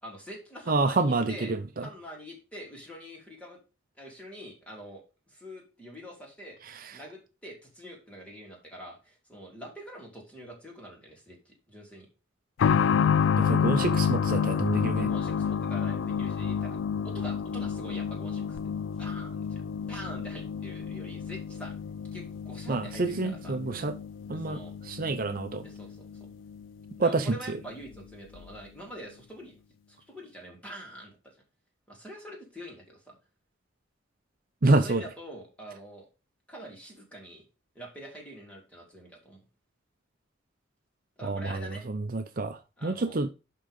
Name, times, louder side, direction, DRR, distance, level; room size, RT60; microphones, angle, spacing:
voice 1, 0.0-1.5 1.8-3.6 4.0-6.6 6.9-12.1 14.9-16.8 17.0-18.6 19.0-19.6 19.9-21.7 22.1-23.6 24.3-24.7 25.6-26.3 27.0-29.5 29.9-31.3 31.9-33.1 34.6-36.1 36.5-37.4 37.7-39.4 41.2-41.8 42.8-43.2, equal, 5° left, 3.3 m, -45 dB
voice 2, 0.7-1.3 13.4-15.1 22.7-23.9 24.3-24.6 24.9-25.6 27.0-27.3 34.6-35.0 41.2-43.3, right 3 dB, 50° right, 0.7 m, -27 dB
sound 1, 12.6-27.0 27.3-27.4 28.4-28.5, left 7 dB, 85° left, 0.3 m, -29 dB
11.0 x 3.9 x 5.2 m
head